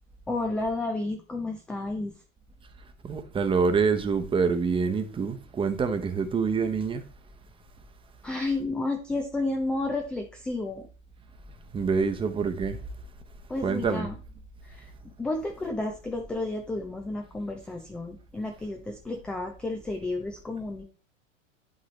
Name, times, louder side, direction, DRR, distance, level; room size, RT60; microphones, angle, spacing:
voice 1, 0.3-2.1 8.2-10.9 13.5-14.2 14.6-20.8, left 2 dB, 5° left, 0.3 m, -31 dB
voice 2, 3.0-7.0 11.7-12.8 13.6-14.1, right 5 dB, 15° right, 0.8 m, -26 dB
10.5 x 3.9 x 3.2 m
figure-of-eight pair, 90°, 39 cm